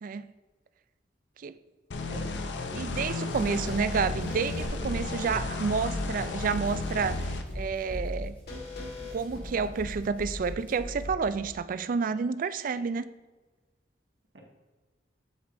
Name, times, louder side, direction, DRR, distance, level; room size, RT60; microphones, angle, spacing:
sound 1, 1.9-7.4, left 3 dB, 90° left, 0.7 m, -34 dB
voice 1, 2.1-2.4 2.7-3.4 14.3-14.4, equal, 85° right, 1.7 m, -44 dB
voice 2, 2.7-8.4 9.0-13.1, right 5 dB, 50° right, 0.4 m, -30 dB
Hands, 3.2-11.6, equal, 10° left, 2.1 m, -46 dB
sound 2, 4.2-11.1, left 1 dB, 65° left, 1.6 m, -38 dB
8.2 x 7.6 x 2.6 m
head